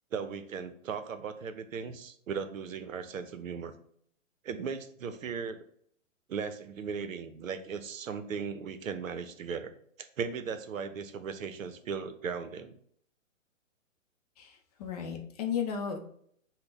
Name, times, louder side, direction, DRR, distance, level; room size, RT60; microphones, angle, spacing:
voice 1, 0.1-3.7 4.4-5.6 6.3-9.7 10.0-12.7, right 6 dB, 80° right, 10 dB, 0.7 m, -37 dB
voice 2, 14.4-16.0, left 7 dB, 30° left, 3 dB, 0.5 m, -34 dB
5.8 x 2.2 x 3.9 m, 0.65 s
hypercardioid pair, 135°, 40 cm